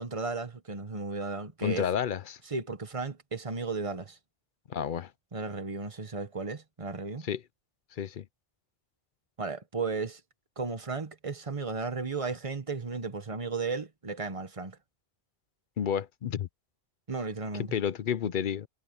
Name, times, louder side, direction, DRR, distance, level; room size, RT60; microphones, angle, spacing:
voice 1, 0.0-1.9 2.5-4.2 5.3-7.3 9.4-10.2 10.6-14.8 17.1-17.7, right 4 dB, 30° right, 1.2 m, -34 dB
voice 2, 1.6-2.4 4.7-5.1 7.2-7.4 8.0-8.2 15.8-16.5 17.5-18.7, left 8 dB, 55° left, 0.7 m, -30 dB
omnidirectional pair, 1.1 m